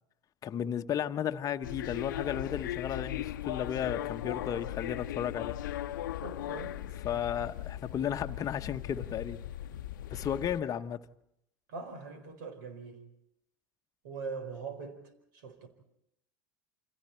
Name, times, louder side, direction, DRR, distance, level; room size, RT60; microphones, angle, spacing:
voice 1, 0.4-5.6 7.0-9.4 10.1-11.0, left 9 dB, 35° left, 1.0 m, -34 dB
sound 1, 1.6-10.6, left 13 dB, 75° left, 0.8 m, -38 dB
voice 2, 6.2-6.8 7.4-7.5 11.7-13.0 14.0-15.0 15.3-15.7, right 4 dB, 70° right, 4.5 m, -42 dB
29.0 x 26.0 x 4.5 m
hypercardioid pair, 90°, 10 cm